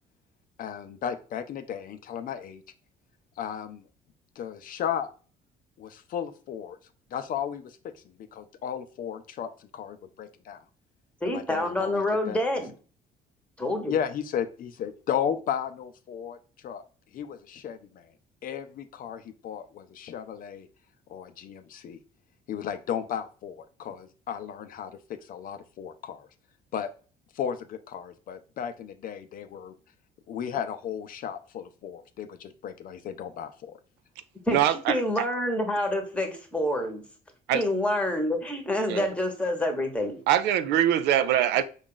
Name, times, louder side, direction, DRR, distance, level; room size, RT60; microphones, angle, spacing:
voice 1, 0.6-2.6 3.4-3.8 4.4-5.1 5.8-6.8 7.1-7.9 8.3-10.6 11.2-12.4 13.8-16.4 16.6-16.8 17.1-18.1 18.4-20.7 21.1-22.0 22.5-26.3 26.7-26.9 27.3-29.7 30.3-33.8, left 8 dB, 55° left, 0.5 m, -34 dB
voice 2, 11.2-12.7 13.6-13.9 34.5-37.0 37.5-40.2, left 1 dB, 5° left, 1.0 m, -27 dB
voice 3, 34.5-35.3 37.5-37.6 38.9-39.1 40.3-41.6, right 11 dB, 85° right, 0.4 m, -23 dB
5.2 x 2.4 x 3.7 m
cardioid pair, 110°, 17 cm